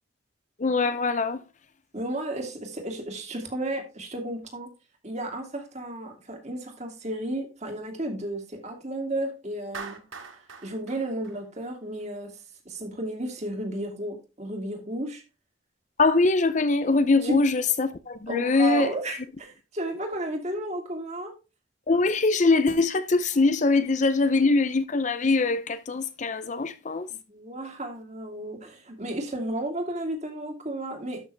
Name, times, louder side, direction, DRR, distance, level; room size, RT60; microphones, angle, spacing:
voice 1, 0.6-1.4 16.0-18.9 21.9-27.1, left 3 dB, 35° left, 0.6 m, -23 dB
voice 2, 1.9-4.7 5.0-10.0 10.6-12.4 12.6-15.2 17.2-17.4 18.3-21.3 27.1-31.2, right 1 dB, 35° right, 2.5 m, -33 dB
Clapping, 9.7-12.0, right 5 dB, 85° right, 2.1 m, -42 dB
12.5 x 6.1 x 3.3 m
head